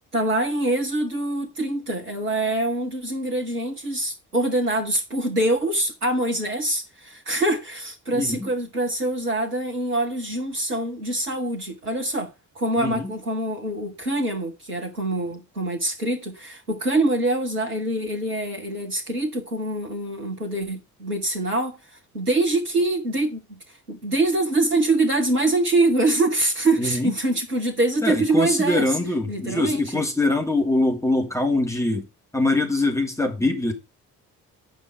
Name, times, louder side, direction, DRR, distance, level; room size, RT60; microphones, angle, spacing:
voice 1, 0.1-21.8 22.1-23.6 23.9-29.0 29.3-30.0, right 2 dB, 90° right, 1.1 m, -24 dB
voice 2, 8.1-8.5 12.8-13.1 26.8-27.1 28.0-32.0 32.3-33.7, left 2 dB, 5° left, 2.6 m, -23 dB
9.1 x 5.2 x 5.0 m
figure-of-eight pair, 40°, 44 cm